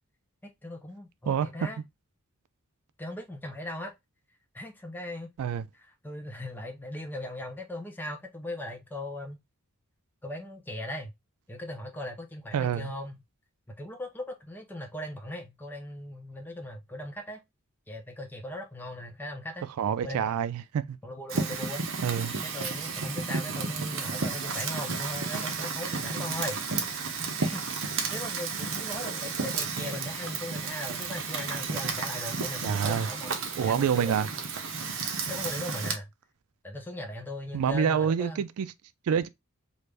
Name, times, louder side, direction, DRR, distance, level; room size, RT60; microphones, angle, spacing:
voice 1, 0.6-1.8 3.0-3.9 4.5-5.3 6.0-9.4 10.2-11.1 11.5-13.2 13.7-17.4 17.9-19.7 20.0-20.3 21.0-21.8 22.4-26.6 27.4-27.6 28.1-34.2 35.3-36.1 36.6-38.4, left 1 dB, 10° left, 0.5 m, -38 dB
voice 2, 1.3-1.7 5.4-5.7 12.5-12.9 19.8-21.0 22.0-22.3 32.6-33.1 33.6-34.3 37.5-38.7 39.1-39.3, right 7 dB, 85° right, 0.3 m, -27 dB
Fire, 21.3-35.9, right 4 dB, 60° right, 0.7 m, -32 dB
3.3 x 2.5 x 3.3 m
head